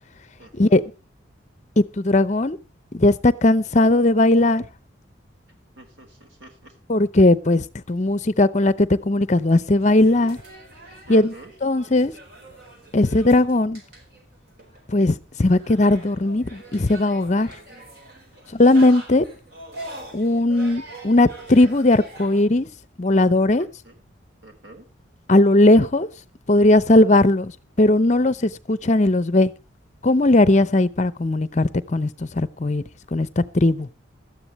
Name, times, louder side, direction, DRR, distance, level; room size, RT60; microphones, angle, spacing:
voice 1, 0.4-0.8 5.8-6.7 11.1-11.5 23.6-23.9 24.4-24.8, right 2 dB, 75° right, 6 dB, 4.1 m, -46 dB
voice 2, 1.8-2.6 2.9-4.6 6.9-10.4 11.1-11.3 11.6-12.1 12.9-13.8 14.9-17.5 18.5-19.2 20.1-22.7 23.0-23.7 25.3-26.1 26.5-27.5 27.8-29.5 30.0-32.8 33.1-33.9, left 2 dB, 35° left, 16 dB, 0.7 m, -18 dB
sound 1, 9.5-22.4, right 1 dB, 50° right, 4.4 m, -43 dB
17.5 x 13.0 x 3.1 m, 0.29 s
head